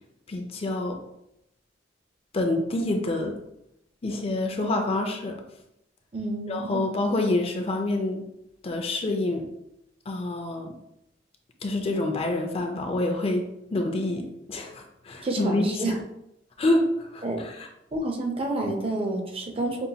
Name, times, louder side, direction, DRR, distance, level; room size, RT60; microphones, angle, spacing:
voice 1, 0.3-1.0 2.3-3.4 4.0-5.4 6.5-8.2 8.6-9.5 10.1-10.7 11.6-16.0 16.6-17.7, left 2 dB, 35° left, 4 dB, 0.4 m, -27 dB
voice 2, 6.1-6.8 15.2-15.9 17.2-17.4 17.9-19.9, right 2 dB, 30° right, 2 dB, 0.5 m, -29 dB
5.3 x 2.2 x 2.8 m, 0.82 s
head